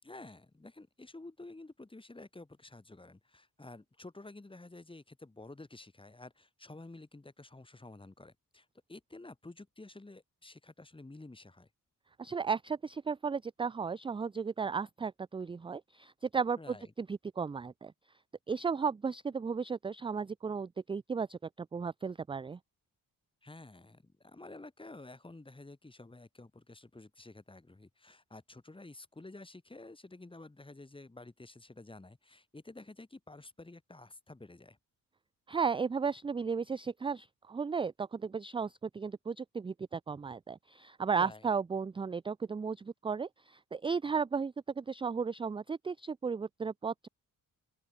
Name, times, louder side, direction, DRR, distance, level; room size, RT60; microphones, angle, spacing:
voice 1, 0.0-11.7 16.6-16.9 23.4-34.8 41.2-41.5, left 2 dB, 15° left, 3.8 m, -51 dB
voice 2, 12.2-17.9 18.5-22.6 35.5-47.1, right 5 dB, 15° right, 0.3 m, -35 dB
open air
wide cardioid pair, 130°, 34 cm